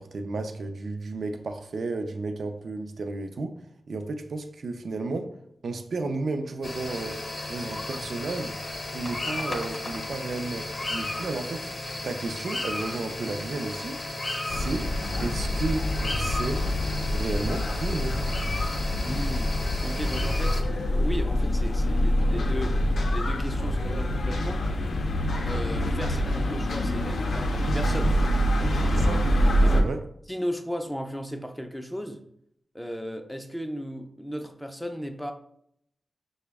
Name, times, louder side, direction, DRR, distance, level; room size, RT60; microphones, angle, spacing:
voice 1, 0.0-3.6 3.9-5.3 5.6-7.2 7.5-8.6 8.9-11.7 12.0-14.0 14.4-14.9 15.2-16.7 17.1-18.2 28.9-29.3 29.8-30.0, right 3 dB, 70° right, 7 dB, 0.5 m, -33 dB
sound 1, 6.6-20.6, left 2 dB, 40° left, 0.7 m, -34 dB
sound 2, 14.5-29.8, equal, 80° left, 0.5 m, -25 dB
voice 2, 19.0-22.8 23.1-24.6 25.4-29.1 29.6-30.0 30.3-32.2 32.7-35.3, equal, 5° left, 6 dB, 0.4 m, -35 dB
5.8 x 2.1 x 3.4 m, 0.72 s
wide cardioid pair, 115°, 0 cm